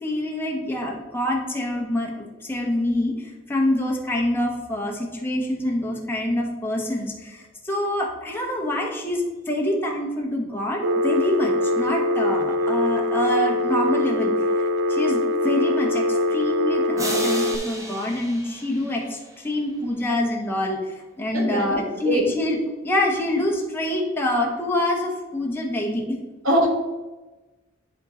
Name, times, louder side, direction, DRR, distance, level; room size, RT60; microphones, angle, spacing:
voice 1, 0.0-22.6 22.8-26.2, left 1 dB, 10° left, -1 dB, 1.2 m, -26 dB
Telephone, 10.8-17.6, left 1 dB, 60° right, 0.4 m, -23 dB
sound 1, 17.0-19.6, right 1 dB, 15° right, 1.0 m, -34 dB
voice 2, 21.3-22.2 26.4-26.7, right 1 dB, 80° right, 0 dB, 1.6 m, -22 dB
10.5 x 3.8 x 3.8 m, 1.1 s
head